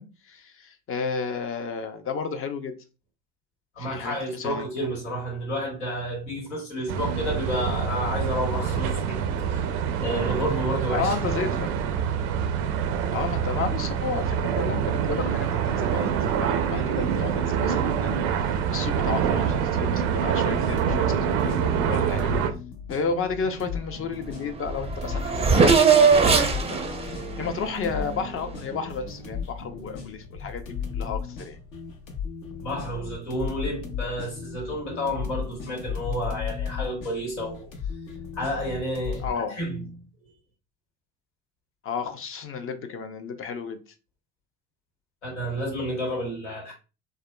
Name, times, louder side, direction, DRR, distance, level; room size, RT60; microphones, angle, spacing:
voice 1, 0.0-2.7 3.8-4.6 10.9-11.7 13.1-22.3 22.9-31.6 39.2-39.6 41.8-43.8, left 5 dB, 40° left, 0.6 m, -32 dB
voice 2, 3.7-9.2 9.5-11.1 32.6-37.7 38.3-39.2 39.5-39.8 45.2-46.7, equal, 90° left, 1.6 m, -30 dB
sound 1, 6.9-22.5, right 8 dB, 75° right, 0.5 m, -26 dB
sound 2, 20.3-39.3, left 6 dB, 65° left, 0.9 m, -36 dB
Race car auto racing / Accelerating revving vroom, 24.3-24.4 24.6-28.6, right 5 dB, 20° right, 0.5 m, -21 dB
3.5 x 2.1 x 2.2 m
hypercardioid pair, 70°, 34 cm